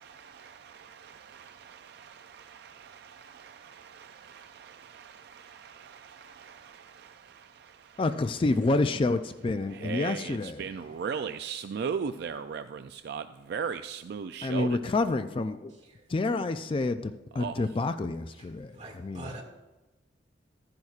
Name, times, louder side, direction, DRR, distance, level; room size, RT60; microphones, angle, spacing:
voice 1, 0.0-8.0 9.7-14.9 17.3-17.7, right 6 dB, 60° right, 0.3 m, -38 dB
voice 2, 8.0-10.6 14.4-15.7 16.1-18.8 19.0-19.4, left 2 dB, 30° left, 0.3 m, -28 dB
voice 3, 15.7-16.1 18.4-19.4, right 2 dB, 40° right, 2.0 m, -45 dB
14.5 x 10.5 x 2.4 m
head